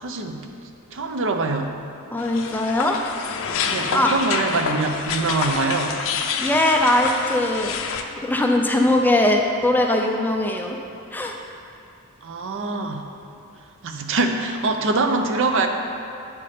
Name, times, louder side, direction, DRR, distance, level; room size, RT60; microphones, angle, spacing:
voice 1, 0.0-0.5 0.9-1.8 3.7-6.0 12.2-13.0 13.8-15.7, right 3 dB, 60° right, 5 dB, 0.6 m, -24 dB
voice 2, 2.1-3.0 3.9-4.1 6.4-7.7 8.0-10.8 11.1-11.4, left 1 dB, 10° left, 1 dB, 0.4 m, -20 dB
sound 1, 2.2-8.0, left 6 dB, 60° left, 0.5 m, -27 dB
8.6 x 4.2 x 5.0 m, 2.6 s
head